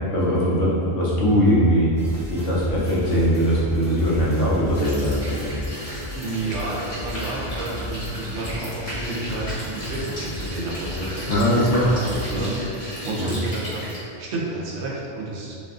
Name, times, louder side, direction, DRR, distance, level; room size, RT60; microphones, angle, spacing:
voice 1, 0.1-1.9 2.3-5.5 11.3-11.9 12.3-12.4 13.2-13.4, equal, 65° left, -6 dB, 0.7 m, -20 dB
sound 1, 2.0-12.5, left 2 dB, 20° right, 0.6 m, -36 dB
sound 2, 4.8-14.0, equal, 35° left, 0.9 m, -34 dB
voice 2, 6.1-13.9 14.2-15.6, right 2 dB, 80° right, -5 dB, 0.8 m, -31 dB
2.6 x 2.4 x 2.3 m, 2.6 s
omnidirectional pair, 1.1 m